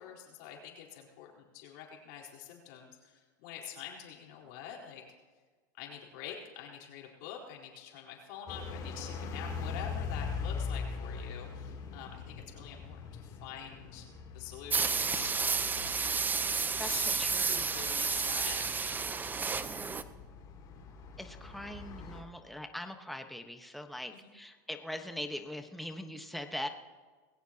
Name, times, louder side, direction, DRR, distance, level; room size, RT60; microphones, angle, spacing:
voice 1, 0.0-5.0 5.8-14.1 14.3-15.3 16.8-19.0 24.2-24.3, left 8 dB, 65° left, -1 dB, 4.2 m, -46 dB
sound 1, 8.5-22.2, left 5 dB, 45° left, 3.0 m, -42 dB
sound 2, 14.7-20.0, right 5 dB, 20° right, 0.7 m, -31 dB
voice 2, 16.8-17.7 21.2-26.7, left 1 dB, ahead, 5 dB, 1.2 m, -41 dB
20.5 x 17.0 x 2.9 m, 1.4 s
supercardioid pair, 110°, 10 cm